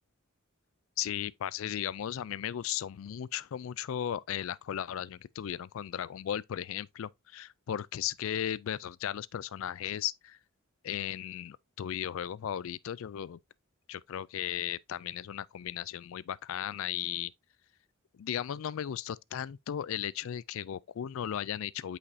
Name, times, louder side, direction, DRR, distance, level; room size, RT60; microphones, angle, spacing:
voice 1, 1.0-10.4 10.8-13.4 13.9-17.3 18.1-22.0, left 10 dB, 70° left, 0.3 m, -36 dB
8.5 x 5.1 x 2.7 m
head